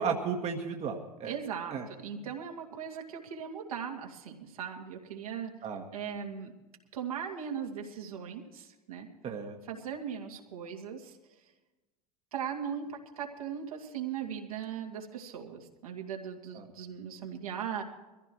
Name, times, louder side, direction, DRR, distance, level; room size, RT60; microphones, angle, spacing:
voice 1, 0.0-1.3 1.7-1.9 5.6-5.8 9.2-9.6 16.5-16.6, right 6 dB, 35° right, 3 dB, 1.6 m, -34 dB
voice 2, 1.2-5.5 5.9-6.5 6.9-9.1 9.7-11.2 12.3-17.8, right 8 dB, 70° right, 1 dB, 2.4 m, -39 dB
23.5 x 15.0 x 3.1 m, 1.1 s
figure-of-eight pair, 75°, 19 cm